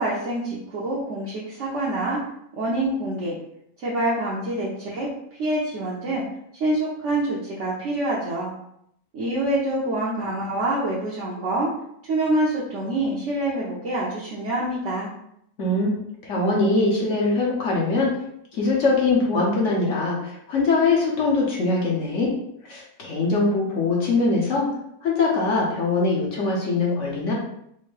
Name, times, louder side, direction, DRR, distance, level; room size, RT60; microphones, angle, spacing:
voice 1, 0.0-2.2 2.5-3.3 3.8-5.1 5.4-6.2 6.5-8.5 9.1-11.7 12.1-15.1, right 1 dB, 60° right, -6 dB, 1.0 m, -26 dB
voice 2, 15.6-15.9 16.2-18.1 18.5-22.3 22.6-24.7 25.0-27.3, left 3 dB, 60° left, -3 dB, 1.1 m, -22 dB
4.4 x 2.1 x 3.2 m, 0.74 s
omnidirectional pair, 1.6 m